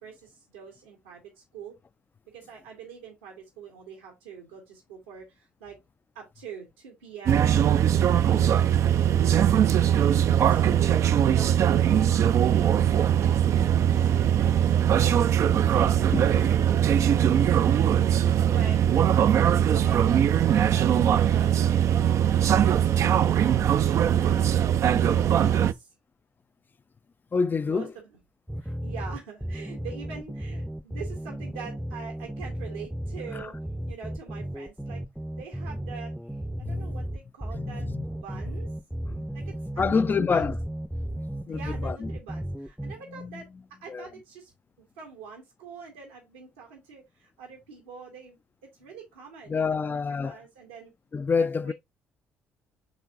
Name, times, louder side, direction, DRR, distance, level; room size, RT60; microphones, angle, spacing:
voice 1, 0.0-1.8 2.3-5.8 6.1-9.5 9.9-12.2 13.0-13.6 13.9-15.1 15.7-16.6 16.9-17.5 18.5-18.8 19.3-20.0 20.5-24.5 25.0-25.9 27.7-28.0 28.6-33.6 33.9-35.0 35.3-38.7 39.3-40.5 41.4-43.5 43.8-44.5 44.8-50.9 51.3-51.7, right 7 dB, 85° right, 2.1 m, -44 dB
sound 1, 7.3-25.7, right 9 dB, 55° right, 0.5 m, -21 dB
voice 2, 27.3-27.9 36.6-36.9 37.5-38.0 39.0-39.3 39.8-40.6 41.5-42.1 43.1-43.4 43.9-44.1 49.5-50.4 51.1-51.7, left 5 dB, 35° left, 0.5 m, -27 dB
sound 2, 28.5-42.9, right 1 dB, 5° right, 0.7 m, -34 dB
7.0 x 3.8 x 3.9 m
hypercardioid pair, 50°, 6 cm